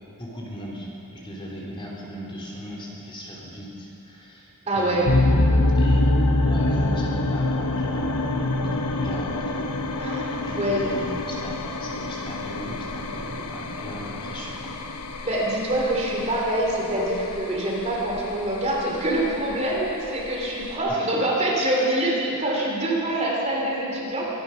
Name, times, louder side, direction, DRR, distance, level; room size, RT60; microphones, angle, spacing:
voice 1, 0.2-6.1 6.4-9.9 10.3-14.8 20.9-21.1 22.5-22.7 23.1-23.2, equal, 25° left, -4 dB, 2.9 m, -37 dB
voice 2, 4.7-5.1 10.0-10.8 15.2-24.3, right 1 dB, 30° right, -3 dB, 2.9 m, -25 dB
sound 1, 5.0-20.8, left 2 dB, 85° left, 1.0 m, -26 dB
23.0 x 11.0 x 5.6 m, 2.8 s
head